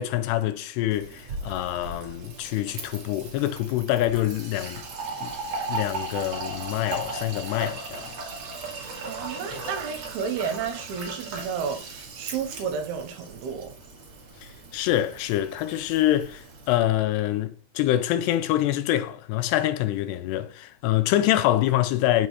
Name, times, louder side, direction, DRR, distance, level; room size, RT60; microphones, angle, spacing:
voice 1, 0.0-4.8 5.2-5.4 5.7-8.1 9.5-9.6 14.4-22.3, left 13 dB, 90° left, 2.8 m, -25 dB
Fill (with liquid), 0.9-16.8, right 3 dB, 50° right, 2.2 m, -37 dB
voice 2, 9.1-13.8, right 6 dB, 80° right, 2.9 m, -32 dB
7.6 x 4.2 x 4.8 m
omnidirectional pair, 4.7 m